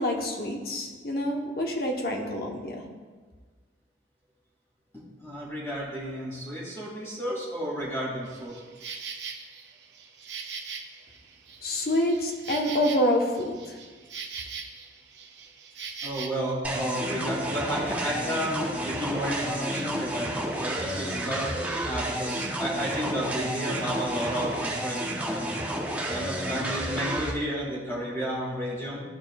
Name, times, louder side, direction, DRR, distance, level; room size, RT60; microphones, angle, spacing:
voice 1, 0.0-2.8 11.6-13.8, left 1 dB, 55° left, 1 dB, 0.9 m, -27 dB
voice 2, 4.9-8.5 16.0-21.5 21.8-25.5 26.1-29.0, equal, 15° left, -7 dB, 2.1 m, -32 dB
Insect, 8.2-16.3, right 5 dB, 80° right, 0.8 m, -40 dB
sound 1, 16.6-27.3, right 1 dB, 10° right, 0.8 m, -31 dB
13.0 x 4.4 x 2.3 m, 1.4 s
head